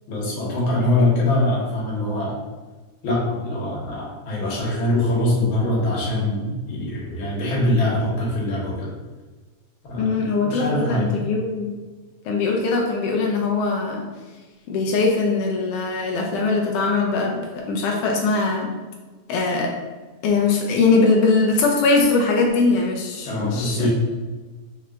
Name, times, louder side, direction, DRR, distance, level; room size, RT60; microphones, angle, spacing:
voice 1, 0.1-2.4 3.0-8.9 9.8-11.0 23.2-23.9, left 1 dB, 55° left, -5 dB, 1.6 m, -23 dB
voice 2, 10.0-11.8 12.3-14.0 14.7-18.7 19.3-19.7 20.2-23.9, left 3 dB, 90° left, 0 dB, 1.3 m, -21 dB
4.8 x 3.1 x 2.3 m, 1.3 s
omnidirectional pair, 3.3 m